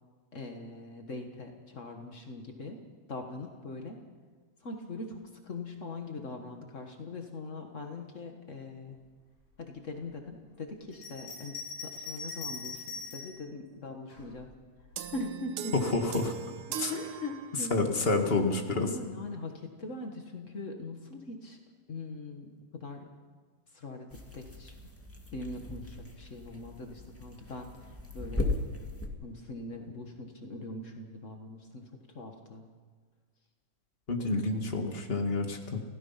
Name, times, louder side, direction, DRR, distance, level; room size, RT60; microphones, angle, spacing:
voice 1, 0.3-2.8 3.1-4.0 4.6-9.0 9.6-11.6 11.8-14.5 15.1-15.7 16.7-17.8 18.7-21.6 21.9-23.1 23.7-24.7 25.3-28.5 29.2-32.7, left 2 dB, 75° left, 3 dB, 0.7 m, -41 dB
Bell, 10.9-13.4 14.1-15.0, left 4 dB, 40° left, 6.9 m, -42 dB
sound 1, 15.0-17.9, right 8 dB, 90° right, 1.2 m, -40 dB
voice 2, 15.9-16.3 16.8-16.9 17.7-18.9 34.1-35.8, left 3 dB, 25° left, 3 dB, 1.2 m, -29 dB
sound 2, 24.1-29.1, left 2 dB, 5° left, 1.1 m, -37 dB
29.5 x 16.5 x 5.8 m, 1.5 s
omnidirectional pair, 3.9 m